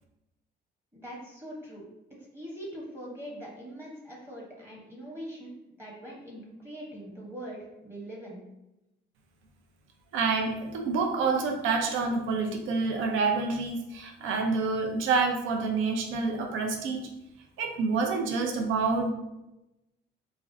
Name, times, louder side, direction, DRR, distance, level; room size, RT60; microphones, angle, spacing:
voice 1, 0.9-1.9 2.2-8.4, equal, 10° right, -5 dB, 0.8 m, -42 dB
voice 2, 10.1-17.0 17.6-19.1, right 4 dB, 80° right, 3 dB, 0.4 m, -27 dB
2.5 x 2.0 x 2.5 m, 0.93 s
cardioid pair, 90°, 20 cm